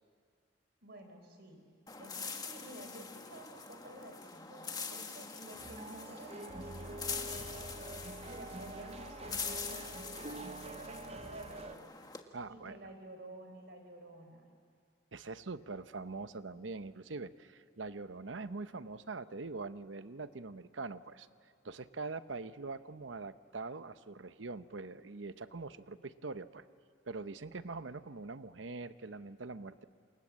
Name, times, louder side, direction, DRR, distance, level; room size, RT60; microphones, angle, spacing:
voice 1, 0.8-1.6 2.0-7.9 8.3-12.1 12.5-14.5, right 1 dB, 60° right, 5 dB, 4.4 m, -51 dB
sound 1, 1.9-12.2, left 5 dB, 20° left, 1.4 m, -44 dB
sound 2, 5.6-11.7, right 2 dB, 35° right, 0.7 m, -46 dB
voice 2, 12.3-12.8 15.1-21.3 21.6-26.6 27.1-29.8, right 3 dB, 75° right, 12 dB, 0.9 m, -43 dB
28.0 x 27.5 x 7.5 m, 2.3 s
head